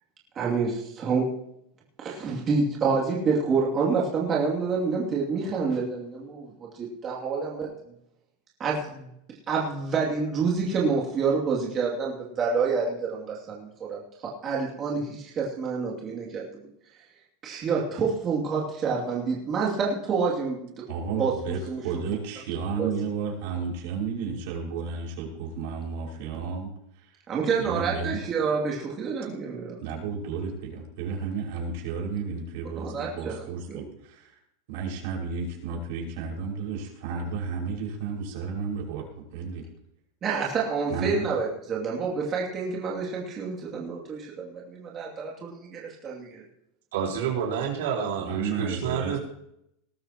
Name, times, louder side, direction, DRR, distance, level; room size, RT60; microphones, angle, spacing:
voice 1, 0.3-1.5 2.0-7.7 8.6-9.1 9.5-16.5 17.4-20.8 21.2-21.3 21.7-21.8 22.8-22.9 27.3-29.8 32.8-33.8 40.2-46.4, right 5 dB, 25° right, -3 dB, 2.7 m, -28 dB
voice 2, 20.9-26.7 27.0-27.1 27.6-28.2 29.8-34.4 34.7-39.6 40.9-41.3 48.2-49.2, right 5 dB, 60° right, -1 dB, 5.7 m, -32 dB
voice 3, 46.9-49.2, right 7 dB, 80° right, -2 dB, 4.2 m, -29 dB
19.5 x 13.0 x 3.0 m, 0.76 s
supercardioid pair, 155°, 0 cm